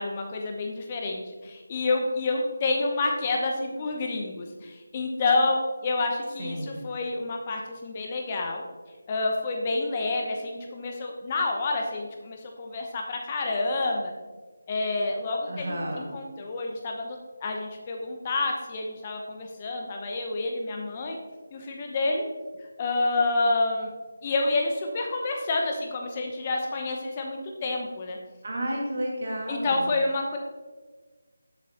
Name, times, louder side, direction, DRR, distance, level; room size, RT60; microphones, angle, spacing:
voice 1, 0.0-8.6 9.1-14.1 14.7-21.2 21.5-22.2 22.8-23.9 24.2-28.2 29.5-30.4, left 2 dB, 25° left, 2 dB, 0.8 m, -28 dB
voice 2, 6.4-6.8 15.5-16.1 28.4-29.9, right 1 dB, 50° right, -2 dB, 2.0 m, -32 dB
12.0 x 7.4 x 2.9 m, 1.4 s
figure-of-eight pair, 165°, 0 cm